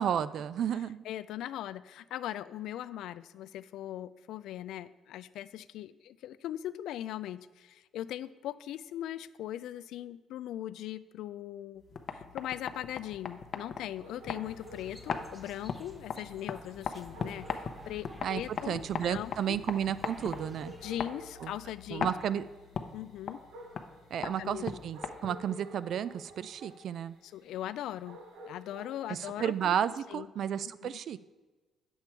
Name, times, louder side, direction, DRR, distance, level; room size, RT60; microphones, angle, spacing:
voice 1, 0.0-1.0 18.2-20.7 21.4-21.5 21.9-22.4 24.1-27.1 29.1-31.2, right 9 dB, 65° right, 16 dB, 0.3 m, -32 dB
voice 2, 1.0-11.8 12.1-19.6 20.8-22.1 22.9-23.4 24.2-24.8 27.2-29.8 30.1-30.3 30.6-31.0, left 12 dB, 85° left, 15 dB, 0.3 m, -40 dB
sound 1, 11.8-25.5, left 6 dB, 50° left, 0.7 m, -40 dB
sound 2, 14.0-30.0, right 1 dB, 85° right, 1.3 m, -52 dB
sound 3, 14.4-21.0, equal, 5° right, 0.9 m, -54 dB
8.9 x 7.2 x 4.5 m, 1.2 s
cardioid pair, 105°, 0 cm